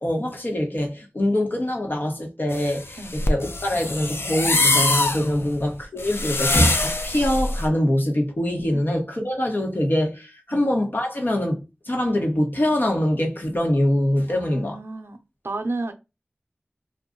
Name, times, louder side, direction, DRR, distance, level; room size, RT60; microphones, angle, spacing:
voice 1, 0.0-14.8, left 1 dB, 55° left, 1.0 m, -24 dB
sound 1, 2.5-7.7, left 2 dB, 75° left, 0.5 m, -24 dB
voice 2, 14.3-15.2 15.4-15.9, right 2 dB, 80° right, 0.5 m, -32 dB
2.5 x 2.3 x 3.7 m
wide cardioid pair, 55°, 4 cm